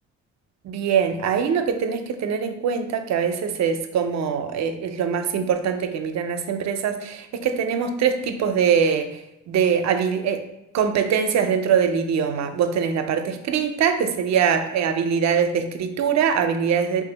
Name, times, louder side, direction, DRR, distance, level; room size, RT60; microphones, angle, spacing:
voice 1, 0.6-9.2 9.5-10.4 10.7-17.0, right 7 dB, 65° right, 8 dB, 0.5 m, -23 dB
3.5 x 2.5 x 3.9 m, 0.89 s
cardioid pair, 90°, 30 cm